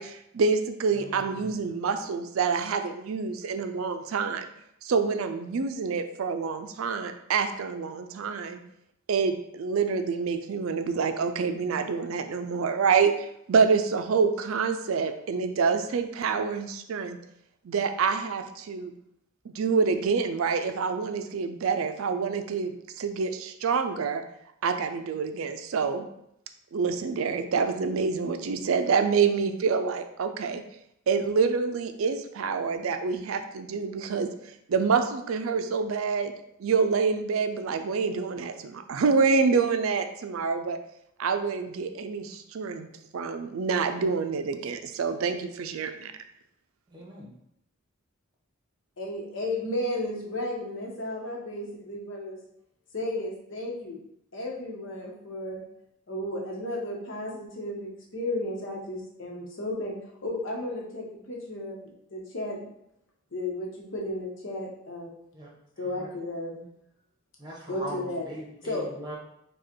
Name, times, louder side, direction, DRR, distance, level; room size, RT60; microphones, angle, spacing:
voice 1, 0.0-4.5 4.8-8.6 9.1-17.2 17.6-18.9 19.5-24.2 24.6-26.1 26.7-30.6 31.1-36.3 36.6-40.8 41.2-42.9 43.1-46.1, right 5 dB, 80° right, 8 dB, 0.4 m, -27 dB
voice 2, 1.0-1.5 46.9-47.3 65.3-65.5 65.8-66.1 67.4-69.1, right 1 dB, 20° right, -3 dB, 1.1 m, -41 dB
voice 3, 49.0-52.4 52.9-54.0 54.3-55.6 56.1-59.9 60.2-61.8 62.1-62.6 63.3-65.1 65.8-66.7 67.7-68.3 68.6-68.9, left 1 dB, 65° left, -1 dB, 1.0 m, -33 dB
4.8 x 2.4 x 4.4 m, 0.76 s
head